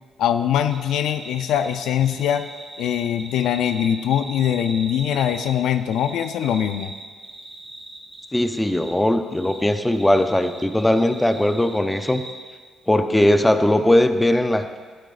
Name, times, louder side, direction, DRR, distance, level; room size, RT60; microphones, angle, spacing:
voice 1, 0.2-2.5 2.8-6.9, left 9 dB, 85° left, 10 dB, 0.4 m, -22 dB
sound 1, 0.7-5.5 5.9-8.9 9.3-12.3, right 2 dB, 20° right, 2.4 m, -39 dB
voice 2, 8.3-12.2 12.9-14.8, left 1 dB, 10° left, 8 dB, 0.6 m, -19 dB
14.0 x 12.0 x 2.5 m, 1.5 s
cardioid pair, 90°, 0 cm